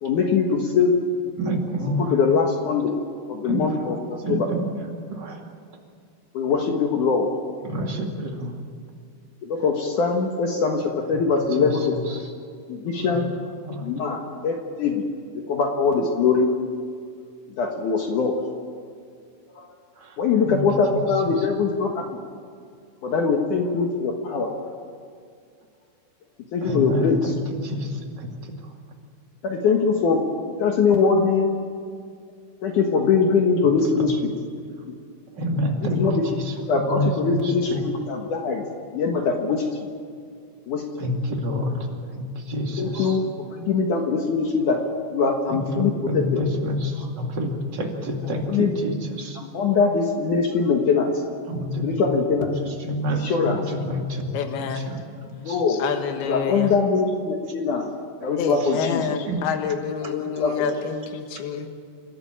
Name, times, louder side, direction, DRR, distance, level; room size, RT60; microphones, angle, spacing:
voice 1, 0.0-1.0 2.0-3.0 3.3-4.5 6.3-7.3 9.4-12.2 12.7-13.3 13.8-15.0 15.5-16.5 17.6-18.3 19.6-19.7 20.2-22.2 23.0-24.5 26.5-27.3 29.4-31.5 32.6-34.3 34.9-35.0 35.8-36.2 36.6-38.6 38.9-39.9 40.7-41.1 42.8-44.8 45.1-46.4 48.5-48.7 49.4-51.1 51.8-52.5 53.1-53.6 55.4-55.8 56.3-57.9 58.2-59.1 60.1-60.5, left 5 dB, 60° left, 2 dB, 2.6 m, -22 dB
voice 2, 1.4-2.2 3.5-3.9 4.2-4.7 5.1-5.4 7.6-8.5 11.6-11.8 12.1-12.2 13.1-13.2 13.6-13.9 20.0-20.1 20.5-20.6 20.9-21.0 26.6-27.4 27.6-28.5 33.6-34.1 35.4-37.8 41.0-41.8 42.1-43.2 45.5-49.4 51.5-52.0 52.8-55.0 55.2-55.6 59.3-59.4, equal, 30° right, 1 dB, 2.5 m, -28 dB
voice 3, 54.3-54.9 55.7-56.7 58.4-61.7, left 7 dB, 75° left, 6 dB, 3.3 m, -28 dB
29.0 x 13.0 x 8.9 m, 2.2 s
omnidirectional pair, 4.5 m